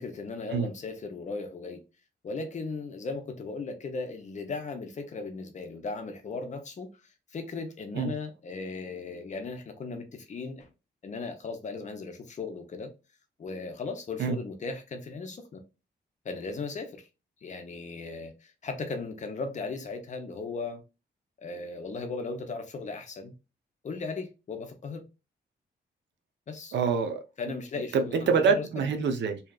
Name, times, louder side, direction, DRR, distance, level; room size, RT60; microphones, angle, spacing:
voice 1, 0.0-1.8 2.2-6.9 7.3-10.7 11.0-12.9 13.4-15.6 16.2-17.1 17.4-20.8 21.4-23.3 23.8-25.1 26.5-26.8 27.4-28.7, left 4 dB, 40° left, 0.6 m, -37 dB
voice 2, 26.7-27.2 27.9-29.4, right 5 dB, 75° right, 0.5 m, -25 dB
2.7 x 2.2 x 2.2 m
wide cardioid pair, 135°, 18 cm